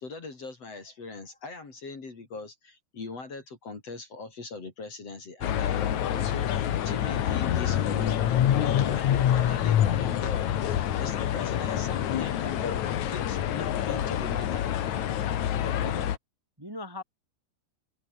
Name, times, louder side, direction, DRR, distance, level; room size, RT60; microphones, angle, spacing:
voice 1, 0.0-8.2 8.6-10.5 11.0-12.7 13.1-14.7, left 3 dB, 35° left, 4.6 m, -40 dB
sound 1, 5.4-16.2, left 11 dB, 60° left, 2.2 m, -26 dB
voice 2, 15.6-16.1 16.6-17.0, left 1 dB, 5° right, 3.2 m, -40 dB
open air
omnidirectional pair, 5.0 m